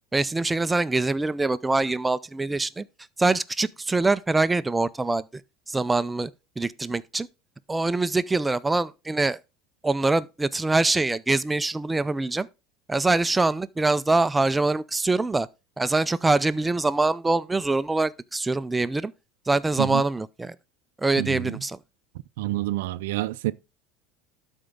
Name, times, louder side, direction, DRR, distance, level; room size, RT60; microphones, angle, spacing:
voice 1, 0.1-2.8 3.2-5.3 5.7-6.3 6.6-7.3 7.7-9.4 9.8-12.5 12.9-15.5 15.8-19.1 19.5-20.6 21.0-21.8, right 3 dB, 10° right, 0.4 m, -24 dB
voice 2, 21.2-21.6 22.4-23.5, right 17 dB, 85° right, 0.4 m, -28 dB
12.5 x 4.5 x 3.7 m
supercardioid pair, 125°, 0 cm